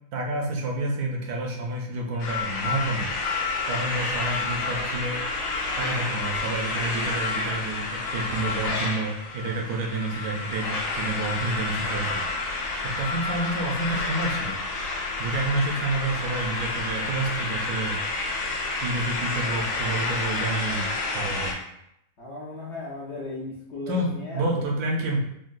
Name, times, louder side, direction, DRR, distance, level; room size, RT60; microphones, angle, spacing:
voice 1, 0.1-3.1 3.7-5.2 5.8-12.2 12.8-14.6 14.9-18.0 18.8-21.6 23.9-25.2, right 2 dB, 80° right, 0 dB, 1.2 m, -29 dB
sound 1, 2.2-21.5, left 3 dB, 85° left, 1.2 m, -29 dB
voice 2, 22.2-24.4 25.0-25.1, left 2 dB, 60° left, -7 dB, 0.9 m, -36 dB
3.8 x 2.2 x 2.5 m, 0.78 s
omnidirectional pair, 1.6 m